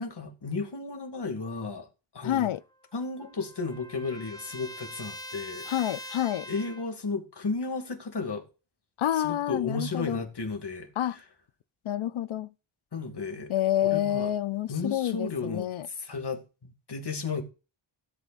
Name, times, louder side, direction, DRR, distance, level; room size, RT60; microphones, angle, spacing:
voice 1, 0.0-1.9 2.1-2.5 2.9-5.7 6.5-8.5 9.2-10.9 12.9-13.5 13.8-14.3 14.7-15.7 16.0-17.4, left 4 dB, 55° left, 2.5 m, -33 dB
voice 2, 2.2-2.6 5.7-6.5 9.0-10.2 11.0-11.2 11.8-12.5 13.5-15.9, left 12 dB, 75° left, 0.6 m, -28 dB
Trumpet, 2.5-6.9, equal, 10° left, 1.1 m, -43 dB
17.0 x 8.1 x 2.5 m
wide cardioid pair, 115°, 48 cm